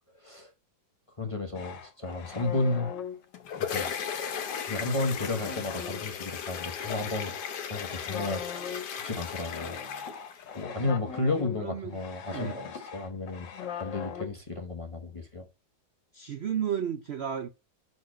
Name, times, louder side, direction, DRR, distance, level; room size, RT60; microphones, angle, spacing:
voice 1, 0.2-0.5 1.2-2.9 3.6-4.0 4.7-7.3 7.7-9.8 10.5-13.5 13.8-15.5, left 2 dB, 25° left, 0.8 m, -33 dB
sound 1, 1.6-14.3, left 7 dB, 90° left, 1.8 m, -40 dB
sound 2, 3.1-10.6, left 7 dB, 70° left, 1.5 m, -37 dB
voice 2, 11.6-11.9 12.3-12.6 16.1-17.5, right 8 dB, 75° right, 0.6 m, -32 dB
6.2 x 4.3 x 6.2 m
omnidirectional pair, 1.9 m